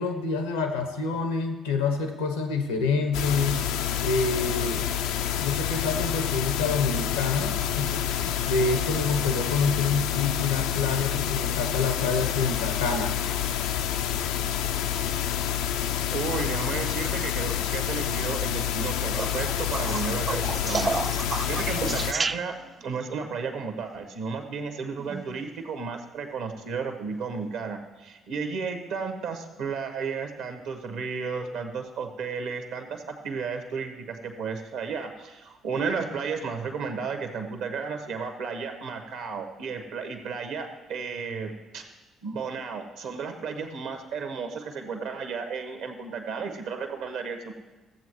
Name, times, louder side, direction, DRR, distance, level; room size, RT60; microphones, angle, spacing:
voice 1, 0.0-3.6 4.0-4.8 5.4-13.1, left 4 dB, 90° left, 6 dB, 0.9 m, -27 dB
sound 1, 3.1-22.1, left 10 dB, 75° left, 0.3 m, -28 dB
voice 2, 16.1-41.8 42.2-47.5, right 5 dB, 75° right, 5 dB, 1.1 m, -33 dB
sound 2, 19.1-22.8 25.0-25.5 27.1-27.2, right 4 dB, 35° right, 0.3 m, -31 dB
14.5 x 7.7 x 3.1 m, 1.1 s
hypercardioid pair, 50°, 0 cm